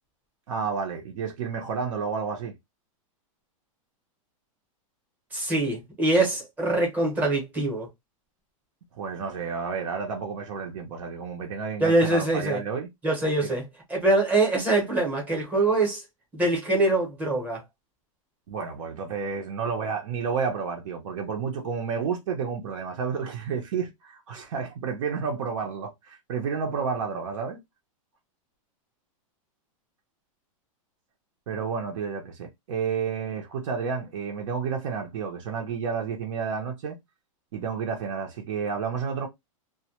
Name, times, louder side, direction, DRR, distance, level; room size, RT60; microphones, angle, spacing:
voice 1, 0.5-2.6 8.9-12.9 13.4-13.5 18.5-27.6 31.5-37.0 37.5-39.3, right 6 dB, 65° right, 0.6 m, -31 dB
voice 2, 5.3-7.9 11.8-12.6 13.0-13.6 13.9-16.0 16.3-17.6, right 2 dB, 10° right, 0.8 m, -24 dB
2.2 x 2.1 x 2.8 m
supercardioid pair, 165°, 18 cm